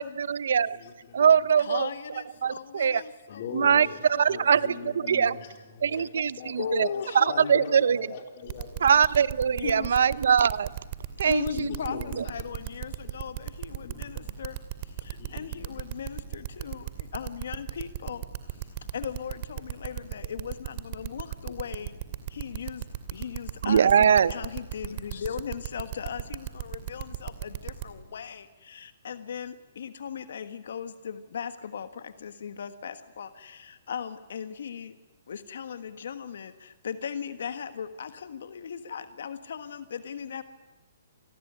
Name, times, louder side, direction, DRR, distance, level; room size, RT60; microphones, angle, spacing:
voice 1, 0.0-0.8 1.1-1.9 2.4-3.0 3.5-5.4 5.8-6.9 7.1-8.0 8.8-10.7 11.2-11.7 12.2-12.3 23.6-24.3, right 7 dB, 75° right, 19 dB, 0.8 m, -22 dB
voice 2, 0.5-1.3 3.3-4.0 4.3-8.9 11.5-12.5 13.8-14.2 15.1-15.7, left 7 dB, 50° left, 5 dB, 4.1 m, -41 dB
voice 3, 1.6-4.8 5.9-6.1 6.5-7.9 8.8-9.2 9.5-10.0 11.2-14.6 14.8-21.9 22.3-35.0 35.3-40.4, left 7 dB, 70° left, 11 dB, 1.5 m, -38 dB
sound 1, 8.5-27.9, right 15 dB, 45° right, 2.5 m, -35 dB
27.5 x 19.0 x 9.8 m, 1.2 s
hypercardioid pair, 150°, 0 cm